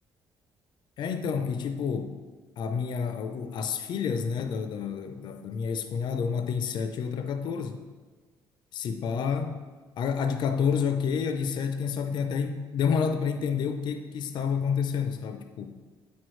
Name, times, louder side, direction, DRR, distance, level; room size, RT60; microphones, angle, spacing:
voice 1, 1.0-2.1 2.6-7.8 8.7-9.6 10.0-15.8, left 6 dB, 60° left, 7 dB, 0.5 m, -29 dB
8.2 x 6.2 x 3.2 m, 1.4 s
cardioid pair, 150°, 9 cm